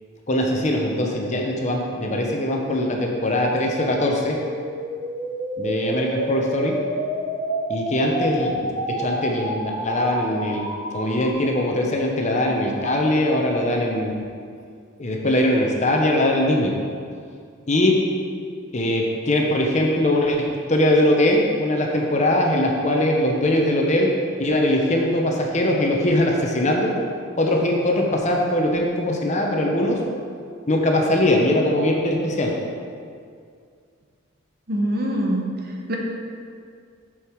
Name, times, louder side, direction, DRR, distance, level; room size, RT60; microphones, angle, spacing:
voice 1, 0.3-4.4 5.6-6.7 7.7-10.7 10.9-14.1 15.0-16.7 17.7-17.9 18.7-24.1 24.4-26.9 27.4-30.0 30.7-32.5, left 1 dB, 35° left, 0 dB, 0.8 m, -21 dB
sound 1, 4.3-11.3, equal, 25° right, 1.4 m, -29 dB
voice 2, 34.7-35.4 35.9-36.0, equal, 45° right, 0 dB, 1.0 m, -23 dB
6.7 x 6.5 x 4.7 m, 2.2 s
head